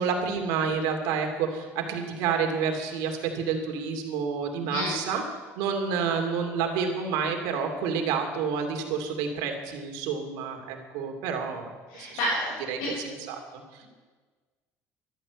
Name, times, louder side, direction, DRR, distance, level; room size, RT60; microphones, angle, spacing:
voice 1, 0.0-5.2 5.6-11.7 12.0-12.1 12.7-12.8 13.0-13.8, right 6 dB, 85° right, 4 dB, 2.7 m, -29 dB
voice 2, 4.6-4.9 11.9-12.9, left 1 dB, 85° left, -7 dB, 6.1 m, -30 dB
12.5 x 12.0 x 8.3 m, 1.4 s
cardioid pair, 105°, 7 cm